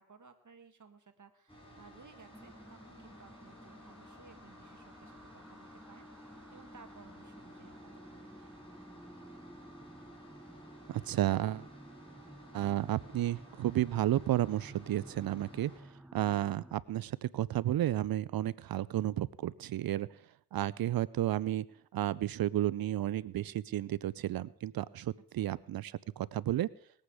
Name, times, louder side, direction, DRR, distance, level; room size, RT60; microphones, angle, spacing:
voice 1, 0.0-8.4 25.2-25.5, right 5 dB, 50° right, 7 dB, 1.9 m, -59 dB
sound 1, 1.5-15.8, equal, 15° left, 4.9 m, -55 dB
sound 2, 2.3-16.7, right 1 dB, 5° right, 0.7 m, -54 dB
voice 2, 10.9-11.7 12.5-15.7 16.1-20.1 20.5-21.7 21.9-26.7, right 13 dB, 70° right, 20 dB, 0.5 m, -32 dB
20.0 x 8.5 x 4.8 m, 0.65 s
cardioid pair, 55°, 37 cm